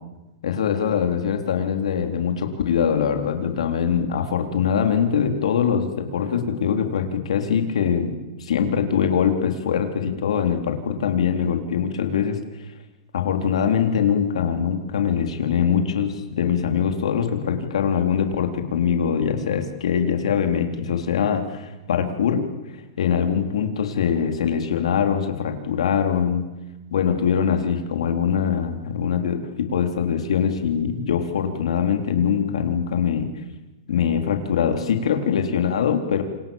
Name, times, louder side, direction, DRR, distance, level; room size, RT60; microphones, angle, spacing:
voice 1, 0.4-8.1 8.4-12.4 13.1-22.5 23.0-26.4 26.9-33.3 33.9-36.2, left 7 dB, 85° left, 5 dB, 3.8 m, -23 dB
28.5 x 28.0 x 7.3 m, 1.1 s
supercardioid pair, 170°, 3 cm